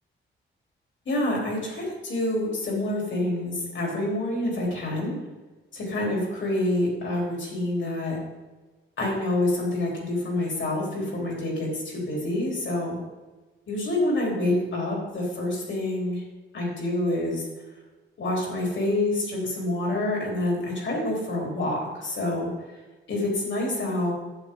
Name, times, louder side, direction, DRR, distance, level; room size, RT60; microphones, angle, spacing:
voice 1, 1.1-5.2 5.7-8.2 9.0-13.0 13.7-16.2 16.5-17.5 18.2-22.5 23.1-24.1, left 1 dB, 65° left, -2 dB, 3.7 m, -27 dB
11.5 x 9.1 x 3.8 m, 1.2 s
wide cardioid pair, 150°, 21 cm